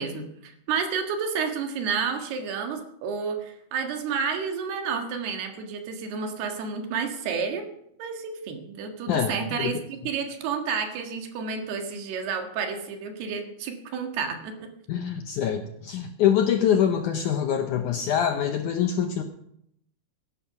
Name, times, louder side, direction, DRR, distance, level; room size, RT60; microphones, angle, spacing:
voice 1, 0.0-7.7 8.0-14.7, right 6 dB, 80° right, 5 dB, 3.7 m, -30 dB
voice 2, 9.1-9.7 14.9-19.2, left 9 dB, 75° left, 6 dB, 1.8 m, -24 dB
16.0 x 11.0 x 5.9 m, 0.75 s
omnidirectional pair, 4.5 m